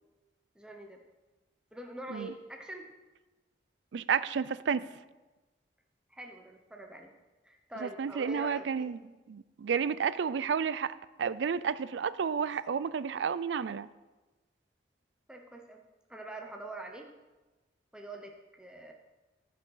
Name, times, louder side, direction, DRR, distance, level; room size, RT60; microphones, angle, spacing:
voice 1, 0.5-1.0 1.7-2.9 6.1-7.1 7.4-9.0 15.3-15.8 16.1-17.1 17.9-18.9, right 1 dB, 5° right, 2 dB, 0.8 m, -44 dB
voice 2, 3.9-4.9 7.8-9.0 9.3-10.9 11.2-13.9, right 6 dB, 85° right, 16 dB, 0.4 m, -31 dB
11.5 x 6.3 x 5.6 m, 1.2 s
head